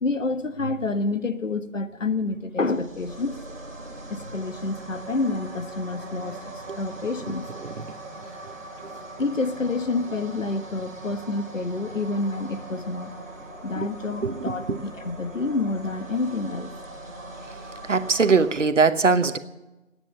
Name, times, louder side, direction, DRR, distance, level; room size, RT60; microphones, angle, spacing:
voice 1, 0.0-3.4 4.1-6.4 6.8-7.5 9.2-13.1 13.6-16.7, left 3 dB, 70° left, 11 dB, 1.4 m, -28 dB
sound 1, 2.5-18.6, right 2 dB, 15° right, 1.9 m, -41 dB
voice 2, 14.2-14.8 17.9-19.4, right 4 dB, 65° right, 12 dB, 1.1 m, -21 dB
14.5 x 9.7 x 9.8 m, 1.1 s
figure-of-eight pair, 180°, 39 cm